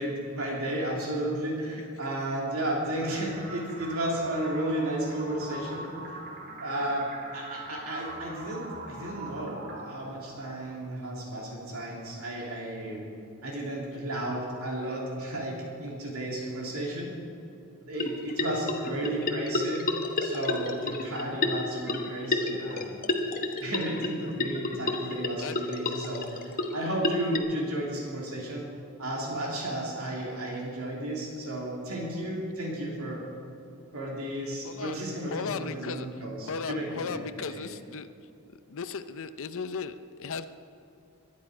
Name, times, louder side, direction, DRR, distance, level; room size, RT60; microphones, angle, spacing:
voice 1, 0.0-5.9 6.6-13.0 13.4-17.1 17.9-19.9 20.2-23.0 23.6-28.6 29.0-33.2 33.9-37.6, right 1 dB, 75° right, -2 dB, 3.1 m, -33 dB
sound 1, 2.9-10.9, right 2 dB, 45° right, 2.5 m, -42 dB
sound 2, 18.0-27.4, left 2 dB, 40° left, 1.3 m, -31 dB
voice 2, 23.6-24.1 25.4-25.6 34.6-35.0 35.3-38.1 38.7-40.5, left 5 dB, 65° left, 11 dB, 0.6 m, -36 dB
22.5 x 10.5 x 5.0 m, 2.7 s
head